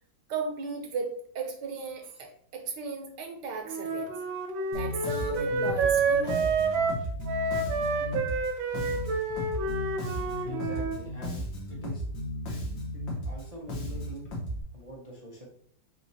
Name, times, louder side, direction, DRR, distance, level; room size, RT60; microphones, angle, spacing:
voice 1, 0.3-4.1 4.7-6.5, right 4 dB, 70° right, 3 dB, 1.3 m, -36 dB
Wind instrument woodwind instrument, 3.7-11.0, right 3 dB, 90° right, 1.4 m, -29 dB
Bass guitar, 4.7-14.6, equal, 75° left, 1.9 m, -35 dB
voice 2, 10.4-12.0 13.3-14.3 14.7-15.5, right 1 dB, 50° right, -4 dB, 0.4 m, -44 dB
6.2 x 3.0 x 2.8 m, 0.63 s
omnidirectional pair, 2.1 m